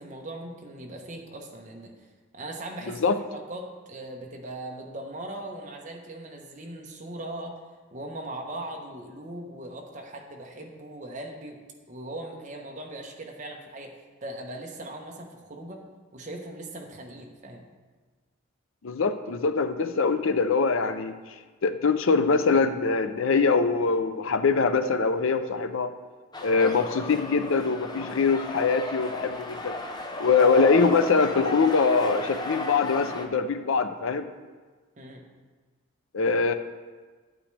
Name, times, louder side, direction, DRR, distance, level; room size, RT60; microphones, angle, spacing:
voice 1, 0.0-1.9 2.3-7.6 7.9-11.6 11.9-15.8 16.1-17.7 35.0-35.2, right 1 dB, 35° right, 1 dB, 1.0 m, -39 dB
voice 2, 18.8-21.1 21.6-25.9 26.4-29.7 30.2-34.2 36.1-36.5, left 4 dB, 70° left, 9 dB, 0.5 m, -23 dB
sound 1, 26.3-33.3, left 2 dB, 20° left, 0.6 m, -35 dB
9.8 x 8.8 x 3.3 m, 1.4 s
head